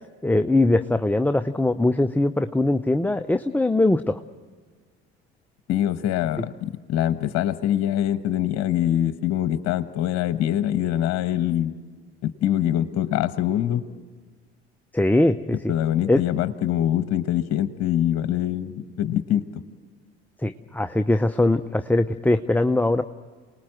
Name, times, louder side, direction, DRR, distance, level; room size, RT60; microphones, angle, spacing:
voice 1, 0.2-4.2 14.9-15.7 16.1-16.2 20.4-23.0, left 2 dB, 5° left, 8 dB, 0.7 m, -21 dB
voice 2, 5.7-11.7 12.2-13.8 15.5-19.6, left 11 dB, 50° left, 12 dB, 1.2 m, -24 dB
28.5 x 19.5 x 7.7 m, 1.5 s
hypercardioid pair, 60°, 32 cm